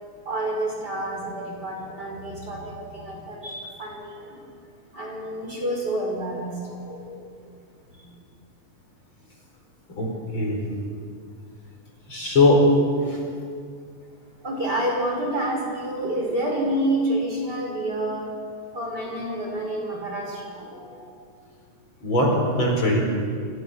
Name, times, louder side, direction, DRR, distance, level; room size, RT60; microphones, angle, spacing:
voice 1, 0.3-4.4 4.9-7.2 8.0-8.2 14.4-18.3 18.7-21.1, right 1 dB, 25° right, -1 dB, 5.5 m, -29 dB
voice 2, 12.1-12.6 13.0-13.2 22.0-23.0, left 2 dB, 35° left, 0 dB, 5.4 m, -20 dB
28.0 x 26.5 x 7.0 m, 2.2 s
omnidirectional pair, 4.0 m